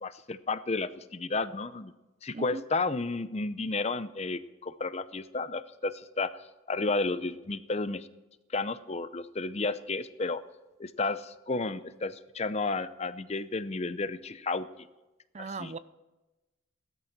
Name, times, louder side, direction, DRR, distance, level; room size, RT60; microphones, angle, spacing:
voice 1, 0.0-1.9 2.2-6.3 6.7-8.1 8.5-10.4 10.8-14.7 15.4-15.7, left 3 dB, 30° left, 0.6 m, -32 dB
voice 2, 15.3-15.8, right 4 dB, 30° right, 0.5 m, -37 dB
17.0 x 13.0 x 5.9 m
head